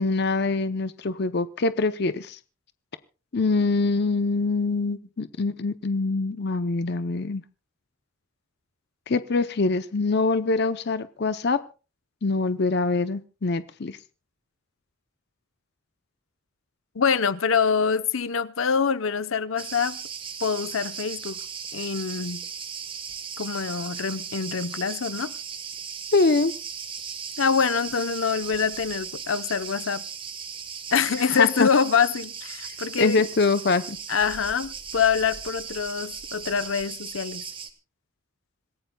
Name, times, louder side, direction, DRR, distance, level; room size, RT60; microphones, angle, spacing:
voice 1, 0.0-2.4 3.3-7.4 9.1-11.6 12.2-14.0 26.1-26.5 31.2-31.7 32.7-34.0, left 3 dB, 55° left, 0.6 m, -24 dB
voice 2, 16.9-20.0 20.4-21.4 21.7-22.4 23.4-25.3 27.4-30.0 30.9-33.2 34.1-37.4, left 6 dB, 85° left, 0.8 m, -25 dB
Cricket, 19.6-37.7, right 6 dB, 25° right, 1.3 m, -37 dB
26.5 x 16.0 x 2.3 m
head